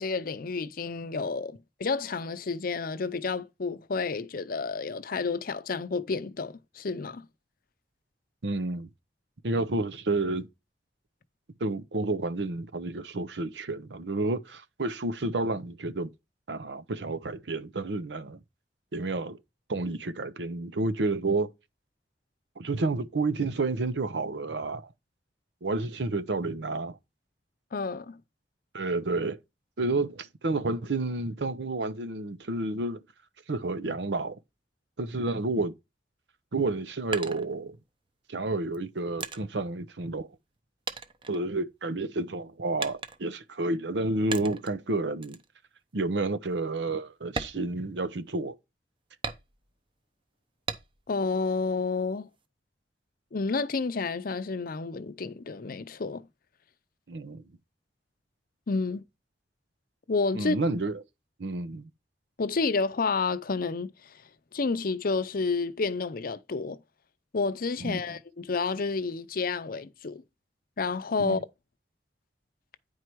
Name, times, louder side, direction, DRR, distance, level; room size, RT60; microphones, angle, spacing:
voice 1, 0.0-7.3 27.7-28.2 51.1-52.3 53.3-56.3 58.7-59.0 60.1-60.6 62.4-64.1 64.5-66.8 67.3-70.2 70.8-71.4, left 4 dB, 55° left, 0.6 m, -30 dB
voice 2, 8.4-8.9 9.4-10.5 11.6-16.1 16.5-18.4 18.9-19.4 19.7-21.5 22.6-24.9 25.6-27.0 28.7-29.4 29.8-33.0 33.5-34.4 35.0-35.7 36.5-37.8 38.3-40.3 41.3-45.4 45.9-48.6 57.1-57.4 60.3-61.0 61.4-61.9 67.8-68.0 71.2-71.4, right 2 dB, 80° right, 0.7 m, -30 dB
sound 1, 36.6-38.1 38.7-40.6 40.9-42.0 42.8-43.5 44.3-44.8 45.2-45.5 45.9-46.0 46.5-46.6 47.2-48.4 49.2-49.9 50.7-51.2 51.6-52.5, right 4 dB, 30° right, 0.8 m, -38 dB
9.6 x 4.7 x 4.6 m
head